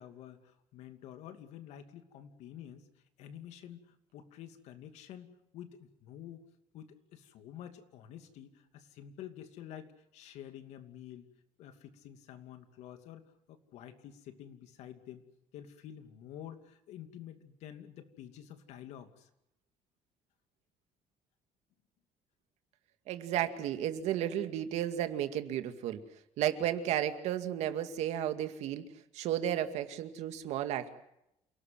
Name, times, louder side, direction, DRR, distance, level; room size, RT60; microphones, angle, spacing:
voice 1, 0.0-2.9 3.2-6.4 6.7-11.3 11.6-15.2 15.5-19.3, left 10 dB, 80° left, 8 dB, 2.6 m, -49 dB
voice 2, 23.1-26.0 26.4-28.9 29.1-30.9, right 11 dB, 80° right, 8 dB, 2.2 m, -33 dB
28.5 x 18.5 x 7.7 m, 0.83 s
cardioid pair, 165°, 11 cm